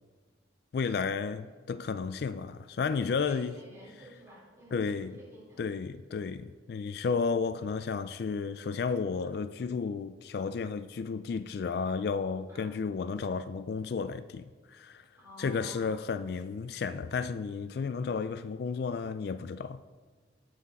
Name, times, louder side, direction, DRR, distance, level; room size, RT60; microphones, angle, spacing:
voice 1, 0.7-3.5 4.7-5.1 5.6-15.0 15.4-19.8, left 5 dB, 55° left, 0.3 m, -32 dB
voice 2, 2.9-5.7 12.5-12.8 15.2-16.0, right 1 dB, 15° right, 4.0 m, -52 dB
18.5 x 6.4 x 4.1 m
head